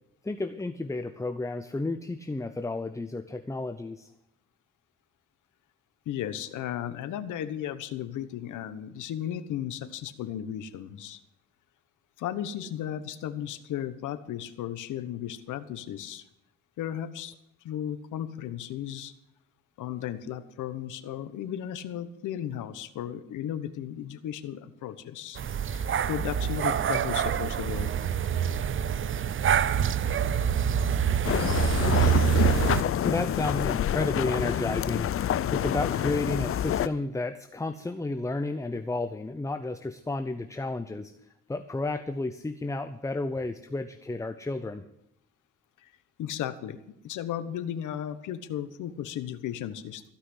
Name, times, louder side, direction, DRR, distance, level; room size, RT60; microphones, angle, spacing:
voice 1, 0.2-4.1 31.9-32.2 33.0-41.1 41.5-44.9, left 2 dB, 10° left, 10 dB, 0.7 m, -32 dB
voice 2, 6.1-11.2 12.2-16.2 16.8-17.3 17.6-19.1 19.8-25.4 25.7-27.9 45.8-45.9 46.2-46.8 47.0-50.0, left 10 dB, 85° left, 12 dB, 1.2 m, -35 dB
sound 1, 25.4-32.8, right 8 dB, 40° right, 0.7 m, -26 dB
sound 2, 31.2-36.9, left 10 dB, 45° left, 0.6 m, -27 dB
16.0 x 5.8 x 9.9 m, 0.80 s
cardioid pair, 90°, 30 cm